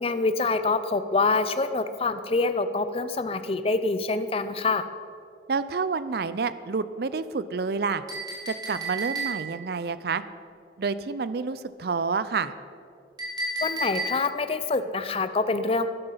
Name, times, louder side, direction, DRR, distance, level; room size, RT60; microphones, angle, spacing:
voice 1, 0.0-4.9 13.6-15.9, left 3 dB, 30° left, 11 dB, 0.5 m, -26 dB
voice 2, 5.5-8.0 8.5-10.2 10.8-12.5, right 4 dB, 55° right, 14 dB, 0.5 m, -28 dB
Chink clink, 8.1-9.7 13.2-14.5, right 2 dB, 20° right, 2.7 m, -32 dB
12.5 x 11.0 x 5.6 m, 2.5 s
head